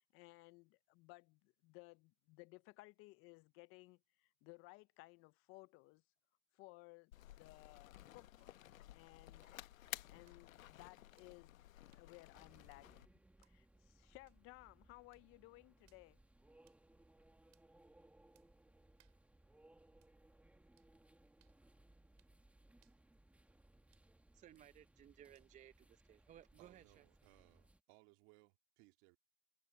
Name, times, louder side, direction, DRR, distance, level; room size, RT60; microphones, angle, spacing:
voice 1, 0.0-6.0 6.5-9.5 10.1-11.6 11.9-13.1 13.4-16.2, left 24 dB, 35° left, 0.5 m, -60 dB
sound 1, 7.1-13.1, left 13 dB, 85° left, 1.1 m, -54 dB
sound 2, 8.4-25.8, right 15 dB, 70° right, 4.2 m, -83 dB
sound 3, 12.3-27.8, right 1 dB, 5° right, 1.7 m, -68 dB
voice 2, 24.3-27.0, right 11 dB, 20° right, 0.6 m, -61 dB
voice 3, 26.6-29.2, right 27 dB, 50° right, 2.2 m, -67 dB
hypercardioid pair, 125°, 39 cm